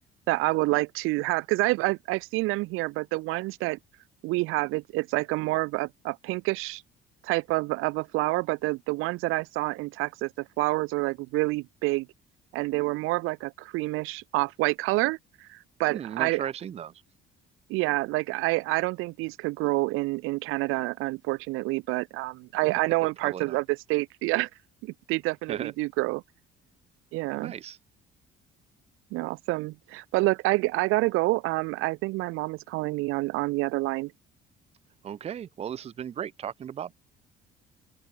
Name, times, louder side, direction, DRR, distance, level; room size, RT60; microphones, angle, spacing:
voice 1, 0.3-3.8 4.2-6.8 7.2-12.1 12.5-16.4 17.7-23.6 23.9-24.5 24.8-26.2 27.1-27.5 29.1-34.1, right 22 dB, 90° right, 0.5 m, -28 dB
voice 2, 15.9-16.9 23.2-23.6 25.5-25.7 27.4-27.8 35.0-37.0, right 9 dB, 30° right, 0.5 m, -36 dB
open air
cardioid pair, 135°, 21 cm